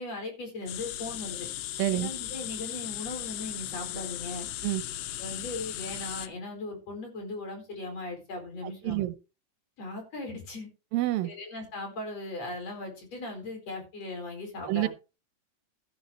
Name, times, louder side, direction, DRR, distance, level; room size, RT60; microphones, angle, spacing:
voice 1, 0.0-1.5 1.9-4.5 5.2-9.1 9.8-10.7 11.2-14.9, left 2 dB, 45° left, 5.5 m, -38 dB
sound 1, 0.7-6.3, left 13 dB, 80° left, 2.6 m, -37 dB
voice 2, 1.8-2.1 4.6-4.8 8.6-9.1 10.9-11.3 14.7-14.9, right 16 dB, 90° right, 2.6 m, -28 dB
13.5 x 12.0 x 3.2 m
omnidirectional pair, 4.0 m